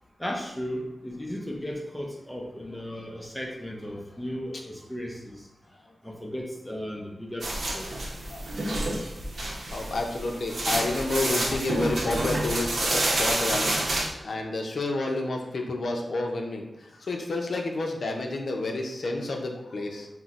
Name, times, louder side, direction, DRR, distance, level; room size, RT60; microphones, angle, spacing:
voice 1, 0.2-5.4 6.0-7.5 7.7-8.0, equal, 10° left, 0 dB, 0.5 m, -35 dB
sound 1, 7.4-14.1, right 1 dB, 65° right, 0.8 m, -29 dB
voice 2, 9.7-20.1, left 2 dB, 65° left, 2 dB, 0.6 m, -30 dB
5.5 x 2.1 x 2.4 m, 0.84 s
wide cardioid pair, 95°, 0 cm